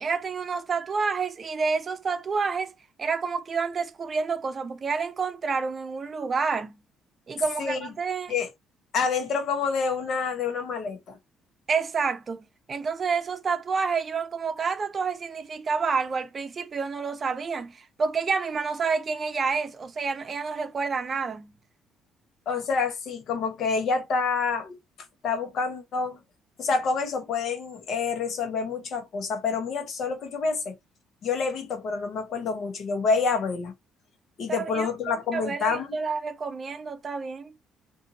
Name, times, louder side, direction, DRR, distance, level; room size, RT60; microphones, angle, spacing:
voice 1, 0.0-6.8 7.3-8.3 11.7-21.5 34.5-37.6, right 5 dB, 45° right, 0.5 m, -29 dB
voice 2, 8.9-11.2 22.5-24.8 25.2-26.2 26.6-30.7 31.2-33.7 34.4-36.0, left 5 dB, 65° left, 1.0 m, -27 dB
2.6 x 2.5 x 2.7 m
supercardioid pair, 60°, 0 cm